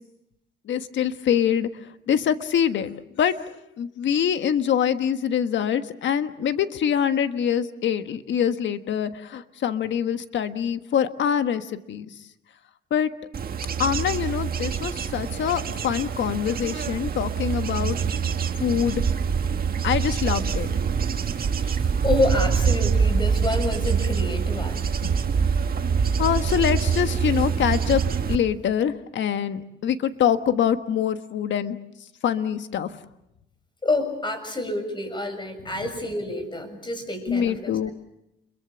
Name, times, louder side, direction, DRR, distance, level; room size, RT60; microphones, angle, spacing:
voice 1, 0.7-1.7 2.1-3.3 3.8-12.0 12.9-13.1 13.8-18.0 18.6-19.0 19.8-20.7 25.0-25.1 26.2-28.0 28.3-31.8 32.2-32.9 37.3-37.9, left 8 dB, 70° left, 10 dB, 1.5 m, -24 dB
Bird / Insect / Wind, 13.3-28.4, right 6 dB, 50° right, 1.7 m, -25 dB
voice 2, 21.6-24.9 25.1-25.2 33.8-37.7, left 2 dB, 25° left, 8 dB, 6.7 m, -28 dB
29.0 x 22.5 x 7.0 m, 0.87 s
cardioid pair, 90°, 20 cm